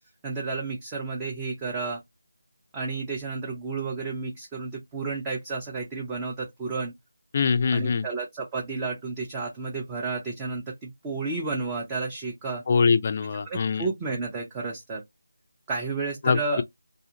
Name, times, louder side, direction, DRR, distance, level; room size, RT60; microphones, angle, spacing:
voice 1, 0.2-2.0 2.7-6.9 7.7-12.6 13.3-15.0 15.7-16.6, right 3 dB, 15° right, 0.5 m, -32 dB
voice 2, 7.3-8.0 12.7-13.8 16.2-16.6, left 5 dB, 35° left, 0.4 m, -23 dB
2.6 x 2.4 x 2.8 m
figure-of-eight pair, 160°, 0 cm